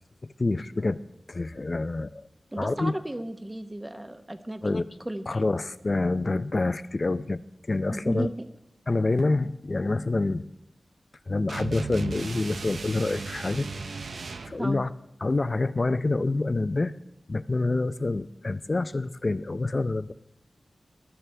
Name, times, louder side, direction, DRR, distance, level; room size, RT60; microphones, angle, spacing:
voice 1, 0.4-1.0 1.3-2.1 2.6-2.9 4.6-4.9 5.3-7.4 7.7-8.3 8.9-10.5 11.3-13.7 14.5-14.9 15.2-16.9 17.3-20.1, left 2 dB, 35° left, 13 dB, 0.5 m, -27 dB
voice 2, 2.5-5.3 7.9-8.4 14.6-14.8, right 1 dB, 15° right, 8 dB, 1.0 m, -34 dB
sound 1, 11.5-14.6, right 4 dB, 75° right, 0.7 m, -36 dB
21.0 x 12.5 x 3.4 m, 0.83 s
wide cardioid pair, 105°, 0 cm